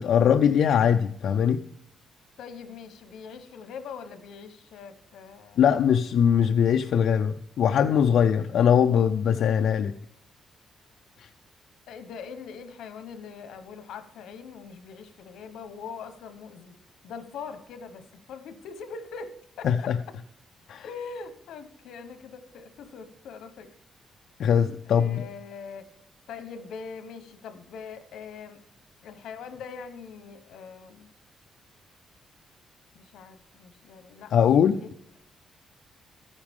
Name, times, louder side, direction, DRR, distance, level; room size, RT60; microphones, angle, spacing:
voice 1, 0.0-1.6 5.6-9.9 19.6-20.0 20.7-20.9 24.4-25.3 34.3-34.8, left 8 dB, 65° left, 6 dB, 0.4 m, -21 dB
voice 2, 2.4-5.6 11.9-16.7 17.0-19.9 20.8-23.7 24.9-25.9 26.3-28.6 29.0-31.1 32.9-34.9, left 5 dB, 85° left, 10 dB, 1.1 m, -42 dB
14.0 x 9.7 x 3.6 m, 0.71 s
cardioid pair, 165°, 0 cm